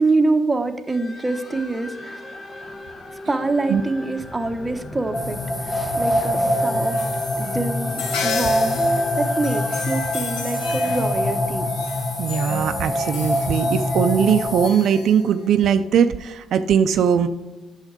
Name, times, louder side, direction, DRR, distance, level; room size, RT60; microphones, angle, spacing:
voice 1, 0.0-2.2 3.3-7.0 7.4-11.7, right 3 dB, 20° right, 6 dB, 0.8 m, -25 dB
sound 1, 0.9-12.1, left 1 dB, 45° left, 1.0 m, -38 dB
sound 2, 5.1-14.7, left 1 dB, 20° left, 1.1 m, -24 dB
sound 3, 6.3-15.8, left 5 dB, 90° left, 1.1 m, -33 dB
voice 2, 12.2-17.3, right 8 dB, 70° right, 9 dB, 0.4 m, -20 dB
8.8 x 6.3 x 3.7 m, 1.2 s
cardioid pair, 90°, 0 cm